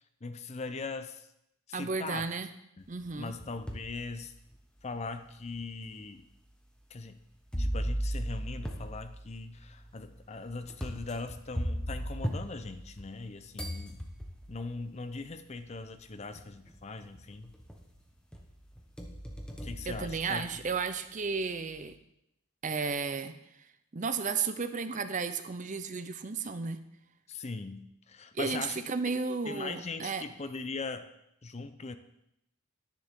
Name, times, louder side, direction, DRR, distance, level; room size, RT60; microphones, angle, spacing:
voice 1, 0.2-1.3 1.7-2.3 2.8-2.9 3.2-4.3 4.8-6.3 6.9-7.2 7.6-14.0 14.5-17.5 19.6-20.5 27.3-28.8 29.5-31.1 31.4-32.0, left 3 dB, 30° left, 10 dB, 0.5 m, -40 dB
voice 2, 1.7-2.5 2.9-3.4 19.9-22.0 22.6-23.4 23.9-26.8 28.3-30.2, right 4 dB, 35° right, 10 dB, 0.6 m, -33 dB
sound 1, 3.0-3.9 4.5-4.6 5.5-5.6 7.5-13.2 13.6-14.6 15.7-15.8 16.3-16.8 17.1-17.9 18.3-20.7, equal, 5° left, 1.0 m, -37 dB
10.5 x 10.5 x 3.6 m, 0.80 s
head